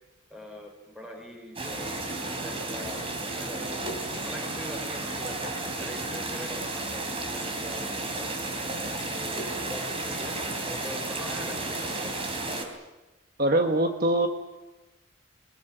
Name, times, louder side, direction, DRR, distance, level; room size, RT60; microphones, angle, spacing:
voice 1, 0.3-3.8 4.2-8.4 9.1-12.2, equal, 5° right, 2 dB, 5.5 m, -43 dB
sound 1, 1.6-12.7, right 2 dB, 30° right, 3.5 m, -33 dB
voice 2, 13.4-14.3, right 1 dB, 45° right, 5 dB, 1.4 m, -23 dB
22.5 x 22.0 x 9.2 m, 1.1 s
head